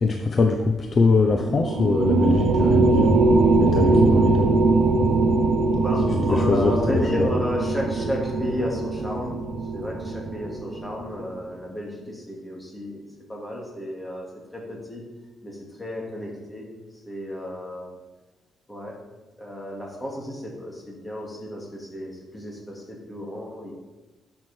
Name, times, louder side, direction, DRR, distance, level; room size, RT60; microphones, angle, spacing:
voice 1, 0.0-3.2 3.6-4.5 6.1-7.3, left 4 dB, 40° left, 3 dB, 0.7 m, -22 dB
sound 1, 1.2-11.0, right 3 dB, 70° right, 1.0 m, -21 dB
voice 2, 5.7-9.3 9.7-13.0 13.3-14.3 14.5-15.0 15.4-16.7 17.1-17.9 18.7-19.0 19.4-23.7, left 1 dB, 15° left, -2 dB, 2.4 m, -32 dB
11.0 x 6.1 x 4.4 m, 1.2 s
cardioid pair, 130°, 0 cm